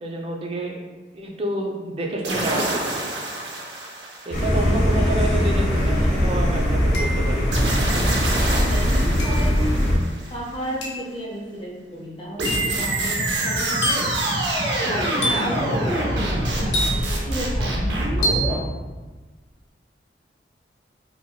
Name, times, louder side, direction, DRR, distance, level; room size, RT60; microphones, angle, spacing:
voice 1, 0.0-0.8 1.1-3.1 4.3-7.5, right 1 dB, 30° right, 0 dB, 0.3 m, -29 dB
sound 1, 2.2-4.9 7.5-10.3 12.4-18.6, right 1 dB, 85° right, 0.5 m, -25 dB
sound 2, 4.3-10.0, equal, 55° left, 1.0 m, -21 dB
voice 2, 4.9-6.2 8.5-9.8 10.3-14.1 14.8-16.3 16.6-17.9, equal, 30° left, -3 dB, 0.6 m, -33 dB
sound 3, 5.8-5.9 6.9-7.5 9.2-9.5 10.8-11.1 12.4-12.8 13.8-14.2 15.2-15.6 16.7-17.3 18.2-18.6, equal, 80° left, 0.6 m, -27 dB
2.9 x 2.6 x 2.3 m, 1.3 s
head